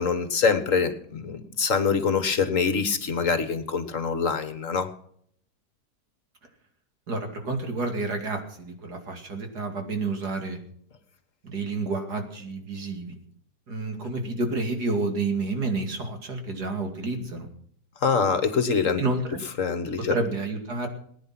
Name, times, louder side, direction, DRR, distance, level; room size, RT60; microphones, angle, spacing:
voice 1, 0.0-4.9 18.0-19.0 19.6-20.1, left 5 dB, 55° left, 10 dB, 1.6 m, -24 dB
voice 2, 7.1-10.6 11.4-13.2 13.7-17.5 19.0-19.4 20.1-20.9, right 3 dB, 75° right, 4 dB, 3.1 m, -29 dB
19.5 x 9.9 x 6.0 m, 0.65 s
omnidirectional pair, 1.7 m